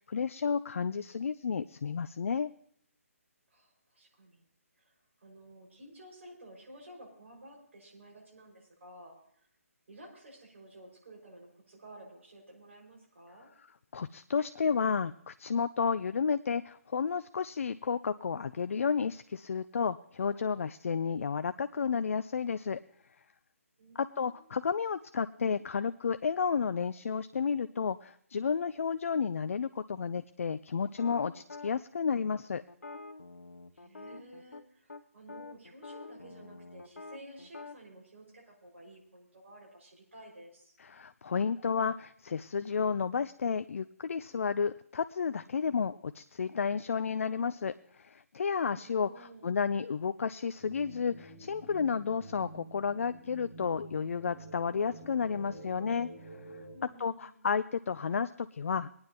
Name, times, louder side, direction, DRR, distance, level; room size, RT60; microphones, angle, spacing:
voice 1, 0.0-2.5 13.9-22.8 24.0-32.6 40.8-56.1 57.0-59.0, left 6 dB, 60° left, 12 dB, 0.4 m, -32 dB
voice 2, 3.5-4.5 4.8-4.9 5.2-9.2 9.9-13.5 23.8-24.6 33.7-40.7 48.7-49.6 56.7-57.3, right 1 dB, 60° right, -2 dB, 5.8 m, -53 dB
sound 1, 31.0-31.7 32.7-34.6 34.9-35.0 35.3-37.8, left 3 dB, 85° left, 0.9 m, -47 dB
sound 2, 50.6-56.8, right 2 dB, 20° right, 6.3 m, -49 dB
22.5 x 9.5 x 3.0 m, 0.67 s
figure-of-eight pair, 150°, 8 cm